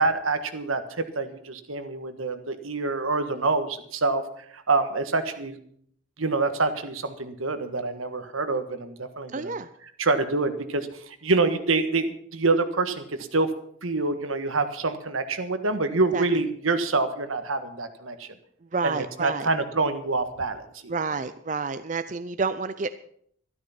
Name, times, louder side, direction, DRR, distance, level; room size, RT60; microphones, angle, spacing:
voice 1, 0.0-5.6 6.2-9.5 10.0-13.5 13.8-18.3 18.8-20.9, right 3 dB, 85° right, 9 dB, 1.5 m, -26 dB
voice 2, 9.3-9.7 16.1-16.2 18.7-19.5 20.9-22.9, right 4 dB, 35° right, 11 dB, 0.5 m, -29 dB
13.0 x 13.0 x 5.8 m, 0.63 s
head